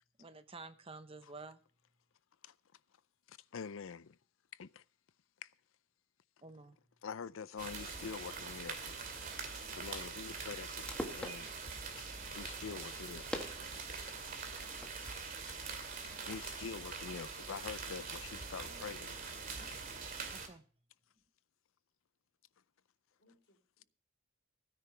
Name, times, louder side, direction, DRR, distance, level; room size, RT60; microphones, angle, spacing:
voice 1, 0.2-1.6 6.4-6.8 19.0-19.1 19.6-19.7 20.3-20.7, right 3 dB, 30° right, 0.9 m, -51 dB
voice 2, 3.3-4.2 4.5-4.8 5.4-5.5 7.0-9.1 9.7-11.5 11.9-13.6 15.8-19.2, left 6 dB, 85° left, 0.5 m, -46 dB
sound 1, 7.6-20.5, right 4 dB, 45° right, 2.3 m, -44 dB
sound 2, 10.6-16.6, left 1 dB, 5° left, 1.7 m, -48 dB
voice 3, 13.3-14.6 18.6-18.8 23.2-23.8, equal, 60° left, 3.9 m, -66 dB
16.0 x 10.0 x 3.3 m
head